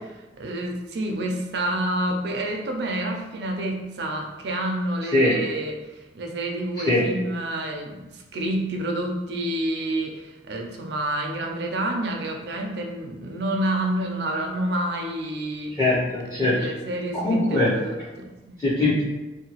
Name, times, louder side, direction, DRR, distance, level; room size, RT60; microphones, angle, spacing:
voice 1, 0.4-5.8 6.1-15.8 16.5-18.6, right 1 dB, 70° right, 2 dB, 0.5 m, -28 dB
voice 2, 5.1-5.4 6.9-7.1 15.8-16.7 17.1-17.8 18.6-19.0, left 2 dB, 20° left, -10 dB, 0.6 m, -21 dB
2.7 x 2.2 x 2.9 m, 1.1 s
head